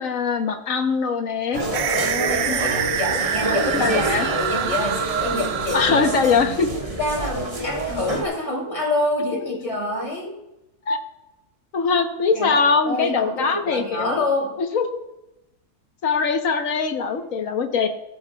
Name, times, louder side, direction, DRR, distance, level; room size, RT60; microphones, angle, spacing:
voice 1, 0.0-1.6 2.4-2.6 3.4-4.3 5.7-6.7 9.3-9.4 10.9-11.0 11.7-14.2 14.6-15.0 16.0-17.9, left 5 dB, 60° left, 7 dB, 1.3 m, -22 dB
sound 1, 1.5-8.2, right 1 dB, 25° right, 1.5 m, -28 dB
sound 2, 1.7-6.6, right 8 dB, 70° right, 1.2 m, -26 dB
voice 2, 2.0-6.1 7.0-10.3 12.3-14.5, left 1 dB, 45° left, -1 dB, 3.4 m, -27 dB
15.0 x 12.5 x 2.3 m, 0.92 s
omnidirectional pair, 1.6 m